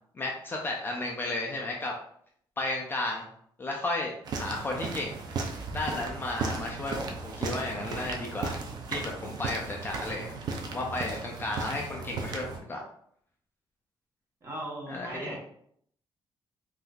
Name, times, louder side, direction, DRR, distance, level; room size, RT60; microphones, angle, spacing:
voice 1, 0.1-2.0 2.6-3.3 3.6-5.2 5.7-8.6 8.9-10.4 10.7-12.8 14.9-15.4, left 2 dB, 25° left, -1 dB, 0.4 m, -33 dB
sound 1, 4.3-12.6, right 4 dB, 50° right, 0.4 m, -36 dB
voice 2, 14.4-15.4, right 1 dB, 30° right, -3 dB, 0.9 m, -37 dB
3.5 x 2.6 x 2.3 m, 0.66 s
cardioid pair, 175°, 9 cm